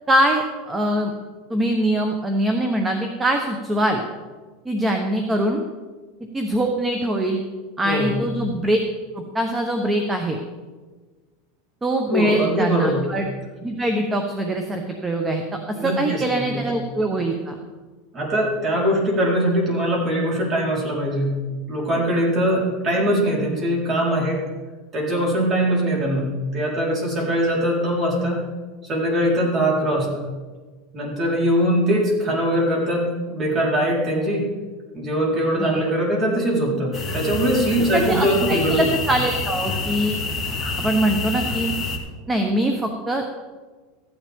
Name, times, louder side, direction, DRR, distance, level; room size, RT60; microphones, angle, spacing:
voice 1, 0.1-1.1 1.5-4.0 4.6-5.6 6.3-7.4 7.8-8.8 9.1-10.4 11.8-13.3 13.6-15.4 15.7-17.6 35.6-35.8 37.9-40.2 40.8-41.7 42.3-43.2, right 1 dB, 15° right, 4 dB, 1.0 m, -23 dB
voice 2, 7.8-8.2 12.1-13.1 15.8-16.7 18.1-21.4 21.7-24.4 24.9-28.4 28.8-30.3 30.9-34.5 34.9-38.9, equal, 30° right, -3 dB, 4.2 m, -22 dB
sound 1, 36.9-42.0, left 3 dB, 10° left, 2.2 m, -27 dB
15.0 x 10.5 x 3.6 m, 1.3 s
supercardioid pair, 135°, 0 cm